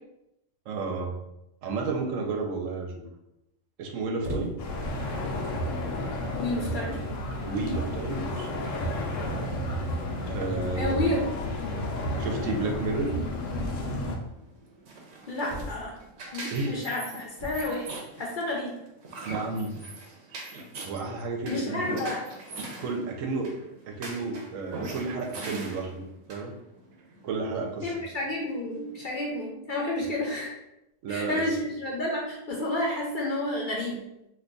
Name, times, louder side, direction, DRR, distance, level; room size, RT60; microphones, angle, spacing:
voice 1, 0.7-1.2 1.6-3.0 3.8-4.5 7.5-8.5 10.2-11.1 12.2-13.1 16.5-16.8 19.2-19.8 20.8-22.0 22.8-23.6 23.9-26.0 26.3-26.5 27.2-27.9 31.0-31.5, right 3 dB, 90° right, 3 dB, 1.0 m, -31 dB
sound 1, 4.2-4.8 5.6-5.8 6.6-6.7 6.9-7.2 8.4-8.5 8.8-8.9 9.1-9.2 10.7-11.3 13.5-14.2 15.5-16.1 17.3-17.8, equal, 40° right, 1.0 m, -38 dB
sound 2, 4.6-14.2, left 1 dB, 85° left, 1.0 m, -32 dB
voice 2, 6.4-6.9 10.8-11.3 15.3-16.0 16.3-17.8 18.2-18.7 21.5-22.2 27.8-30.5 31.1-34.0, left 1 dB, 50° left, -2 dB, 0.6 m, -30 dB
sound 3, 14.2-29.3, right 2 dB, 65° right, 0.9 m, -42 dB
2.7 x 2.3 x 3.8 m, 0.86 s
omnidirectional pair, 1.3 m